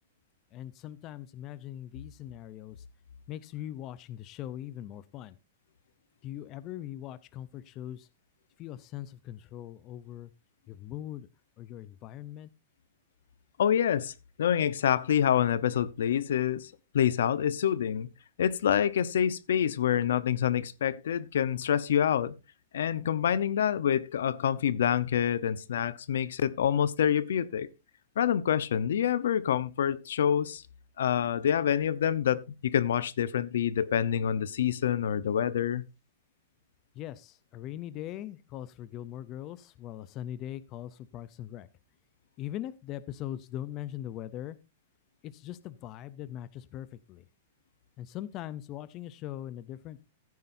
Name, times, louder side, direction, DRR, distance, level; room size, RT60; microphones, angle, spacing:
voice 1, 0.5-2.8 3.3-5.4 6.2-8.1 8.6-10.3 10.7-11.3 11.6-12.5 37.0-41.7 42.4-44.6 45.2-47.2 48.0-50.0, left 12 dB, 25° left, 0.5 m, -41 dB
voice 2, 13.6-14.1 14.4-18.1 18.4-22.3 22.7-27.7 28.2-30.6 31.0-35.8, left 9 dB, 80° left, 0.8 m, -27 dB
15.0 x 9.5 x 2.6 m
supercardioid pair, 175°, 0 cm